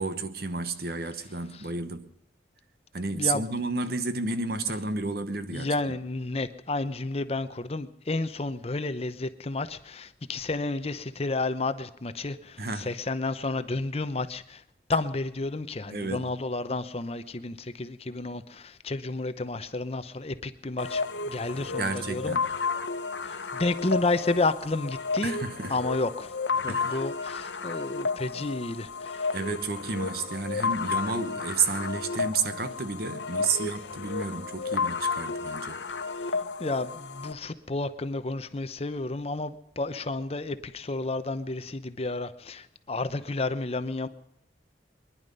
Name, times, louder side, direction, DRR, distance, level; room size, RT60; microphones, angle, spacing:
voice 1, 0.0-2.1 2.9-6.0 12.6-12.9 15.9-16.3 21.8-22.5 25.2-25.8 26.7-27.0 29.3-35.8, right 4 dB, 55° right, 1.1 m, -31 dB
voice 2, 3.1-3.4 5.5-14.6 14.9-22.3 23.2-25.3 25.7-26.3 26.6-29.3 36.1-44.1, left 2 dB, 35° left, 0.8 m, -31 dB
sound 1, 20.8-37.3, left 4 dB, 80° left, 1.1 m, -32 dB
23.0 x 11.0 x 5.4 m
head